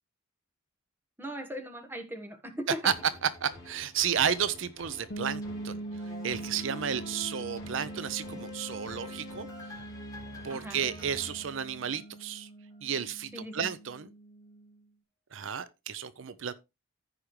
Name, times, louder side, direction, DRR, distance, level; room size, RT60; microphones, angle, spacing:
voice 1, 1.2-2.8 10.5-10.9 13.3-13.7, equal, 10° right, 1.3 m, -39 dB
sound 1, 2.8-12.2 12.7-12.8, left 2 dB, 15° left, 3.7 m, -47 dB
voice 2, 3.2-5.8 6.2-9.5 10.4-12.5 12.8-14.1 15.3-16.5, right 8 dB, 65° right, 0.5 m, -32 dB
sound 2, 5.1-14.8, right 2 dB, 50° left, 1.1 m, -43 dB
14.5 x 5.0 x 3.1 m
head